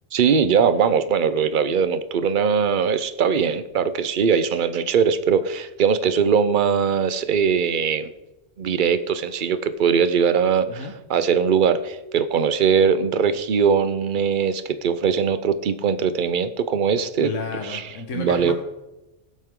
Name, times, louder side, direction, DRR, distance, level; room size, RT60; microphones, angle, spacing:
voice 1, 0.1-8.1 8.6-17.3 17.6-17.8 18.1-18.5, right 6 dB, 50° right, 12 dB, 0.9 m, -21 dB
voice 2, 17.2-18.5, left 4 dB, 85° left, 4 dB, 1.5 m, -31 dB
21.0 x 8.0 x 3.8 m, 1.0 s
omnidirectional pair, 1.2 m